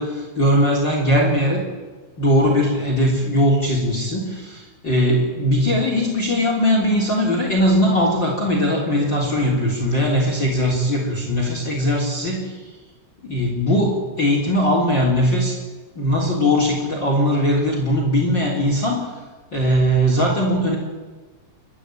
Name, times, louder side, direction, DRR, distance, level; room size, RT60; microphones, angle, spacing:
voice 1, 0.0-1.7 2.2-12.5 13.2-15.6 16.0-19.1 19.5-20.8, equal, 25° left, 0 dB, 3.5 m, -20 dB
29.5 x 13.0 x 9.0 m, 1.3 s
omnidirectional pair, 5.5 m